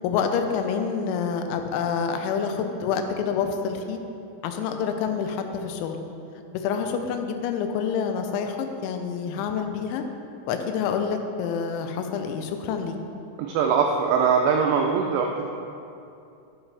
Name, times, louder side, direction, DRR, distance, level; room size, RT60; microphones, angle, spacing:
voice 1, 0.0-4.0 4.4-6.0 6.5-10.0 10.5-13.0, left 6 dB, 85° left, 6 dB, 2.9 m, -27 dB
voice 2, 13.4-15.3, right 6 dB, 85° right, 2 dB, 2.4 m, -21 dB
10.5 x 7.2 x 3.3 m, 2.7 s
omnidirectional pair, 5.4 m